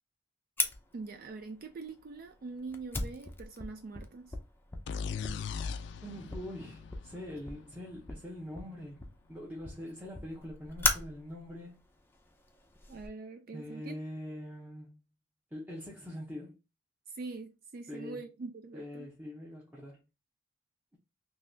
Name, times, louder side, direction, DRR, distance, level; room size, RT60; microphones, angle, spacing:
Fire, 0.6-13.1, left 3 dB, 10° left, 0.5 m, -39 dB
voice 1, 0.9-4.4 12.9-13.9 17.1-19.1, right 3 dB, 50° right, 0.4 m, -43 dB
sound 1, 4.9-8.5, left 6 dB, 65° left, 0.3 m, -40 dB
voice 2, 6.0-9.0 9.3-11.8 13.5-15.0 15.5-16.6 17.9-18.2 18.7-20.0, left 1 dB, 10° right, 0.8 m, -43 dB
3.8 x 2.8 x 2.7 m
head